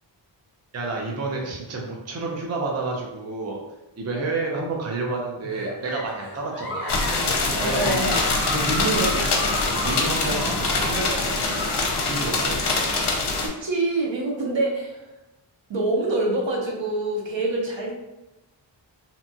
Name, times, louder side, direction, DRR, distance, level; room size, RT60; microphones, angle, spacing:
voice 1, 0.7-3.6 4.0-7.0 7.6-11.6 12.1-12.6, right 3 dB, 35° right, -1 dB, 0.5 m, -29 dB
Giggle, 5.4-12.1, left 1 dB, 30° left, 1.1 m, -32 dB
sound 1, 6.9-13.5, left 3 dB, 60° left, 0.6 m, -24 dB
voice 2, 7.6-8.2 10.2-10.6 12.7-12.9 13.4-15.1 15.7-17.9, right 2 dB, 70° right, 0 dB, 0.7 m, -26 dB
2.7 x 2.2 x 2.7 m, 0.95 s
wide cardioid pair, 80°, 47 cm